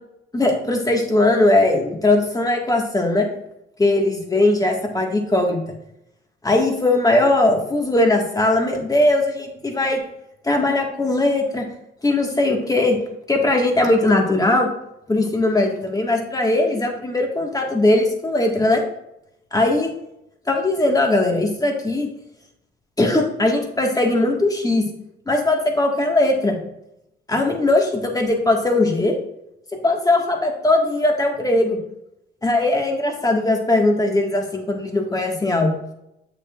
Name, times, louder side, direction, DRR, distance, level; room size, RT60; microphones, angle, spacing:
voice 1, 0.3-3.3 3.8-5.6 6.4-10.0 10.4-11.7 12.0-13.0 13.3-14.7 15.1-18.8 19.5-19.9 20.5-22.1 23.0-24.9 25.3-26.6 27.3-29.1 29.8-31.8 32.4-35.8, left 2 dB, 20° left, 2 dB, 1.7 m, -19 dB
8.1 x 6.8 x 2.5 m, 0.84 s
cardioid pair, 90°, 20 cm